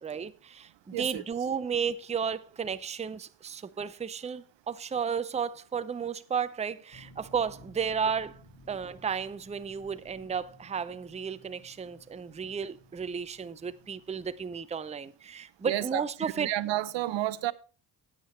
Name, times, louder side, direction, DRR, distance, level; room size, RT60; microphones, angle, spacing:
voice 1, 0.0-16.5, right 6 dB, 15° right, 0.5 m, -33 dB
voice 2, 0.9-1.2 15.6-16.0 16.4-17.5, right 14 dB, 75° right, 0.6 m, -30 dB
sound 1, 6.9-14.6, left 1 dB, 40° left, 2.5 m, -57 dB
9.3 x 8.4 x 4.2 m
cardioid pair, 70°, 45 cm